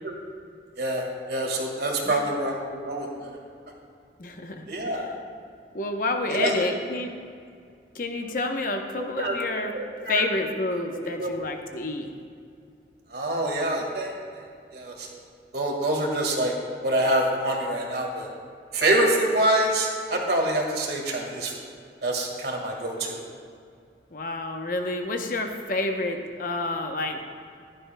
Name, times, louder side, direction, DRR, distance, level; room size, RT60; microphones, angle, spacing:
voice 1, 0.8-3.3 4.7-5.1 6.3-6.7 9.0-9.3 9.7-10.2 11.2-11.3 13.1-14.1 14.7-15.2 15.5-16.5 16.8-18.3 18.7-21.6 22.0-23.2, right 1 dB, 65° right, 0 dB, 1.9 m, -26 dB
voice 2, 4.2-5.1 5.7-7.1 7.9-9.7 10.1-12.1 24.1-27.3, left 2 dB, 50° left, 4 dB, 0.9 m, -29 dB
15.5 x 11.0 x 2.3 m, 2.3 s
head